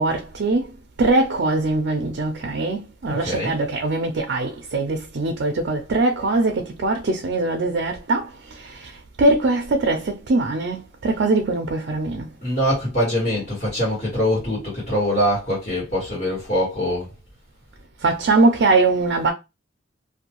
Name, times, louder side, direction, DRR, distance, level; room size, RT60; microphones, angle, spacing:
voice 1, 0.0-12.3 18.0-19.3, right 2 dB, 60° right, 0.4 m, -22 dB
voice 2, 3.0-3.6 12.4-17.1, equal, 35° left, 1.5 m, -23 dB
2.6 x 2.2 x 2.9 m
head